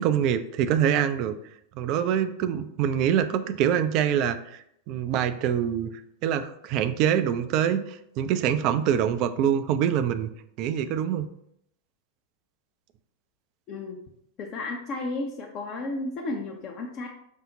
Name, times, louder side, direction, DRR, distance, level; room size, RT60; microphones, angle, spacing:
voice 1, 0.0-1.3 1.8-5.9 6.2-10.3 10.6-11.3, right 9 dB, 40° right, 10 dB, 0.3 m, -25 dB
voice 2, 13.7-14.0 14.4-17.1, left 2 dB, 35° left, 1 dB, 0.5 m, -33 dB
5.3 x 2.1 x 3.8 m, 0.74 s
figure-of-eight pair, 90°, 0 cm